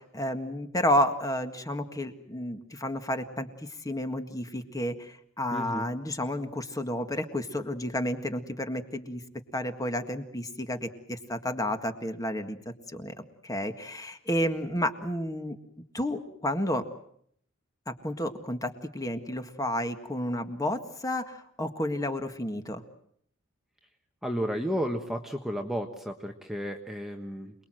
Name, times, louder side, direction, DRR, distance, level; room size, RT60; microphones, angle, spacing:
voice 1, 0.0-9.2 9.5-13.1 13.4-15.6 15.9-16.8 17.9-22.8, left 1 dB, 15° left, 7 dB, 1.8 m, -31 dB
voice 2, 5.5-5.9 24.2-27.5, equal, ahead, 3 dB, 1.3 m, -32 dB
28.0 x 21.0 x 7.8 m, 0.67 s
head